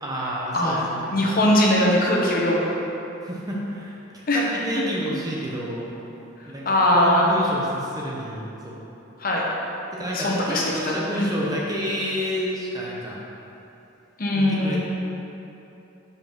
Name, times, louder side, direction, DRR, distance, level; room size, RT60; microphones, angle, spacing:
voice 1, 0.0-1.2 3.2-6.0 6.4-8.8 9.9-13.2 14.3-14.8, equal, 20° right, -4 dB, 0.8 m, -29 dB
voice 2, 0.5-0.9 1.1-2.6 4.3-4.4 4.7-4.8 6.6-7.3 9.2-9.5 10.1-11.2 14.2-14.8, left 1 dB, 45° left, -3 dB, 1.0 m, -21 dB
5.4 x 5.0 x 6.0 m, 3.0 s
head